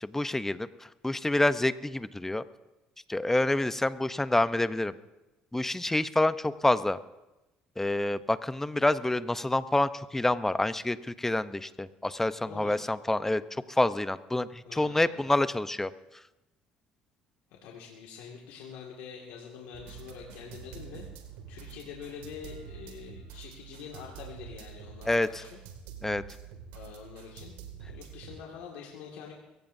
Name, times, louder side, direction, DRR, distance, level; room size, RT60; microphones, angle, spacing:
voice 1, 0.0-2.4 3.1-4.9 5.5-7.0 7.8-13.4 13.7-15.9 25.1-25.4 26.0-26.2, left 2 dB, 10° left, 13 dB, 0.7 m, -27 dB
voice 2, 12.4-12.9 14.7-15.3 17.6-21.1 21.5-25.6 26.7-29.3, left 7 dB, 85° left, -2 dB, 2.0 m, -45 dB
sound 1, 19.7-28.4, right 8 dB, 85° right, 2.2 m, -47 dB
22.5 x 16.0 x 2.7 m, 1.0 s
supercardioid pair, 85°, 3 cm